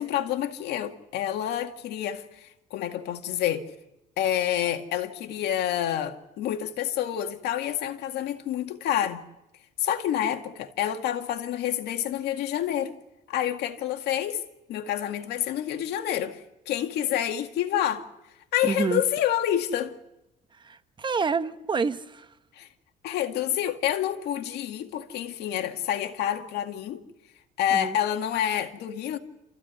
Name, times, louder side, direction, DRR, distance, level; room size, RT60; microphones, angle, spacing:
voice 1, 0.0-3.7 4.2-9.2 9.8-12.9 13.3-14.4 14.7-18.0 18.5-20.0 22.5-22.7 23.0-27.0 27.6-29.2, left 11 dB, 80° left, 2.0 m, -28 dB
voice 2, 18.6-19.0 20.6-22.3 27.7-28.0, right 5 dB, 30° right, 1.0 m, -28 dB
28.5 x 15.0 x 9.5 m
cardioid pair, 110°, 17 cm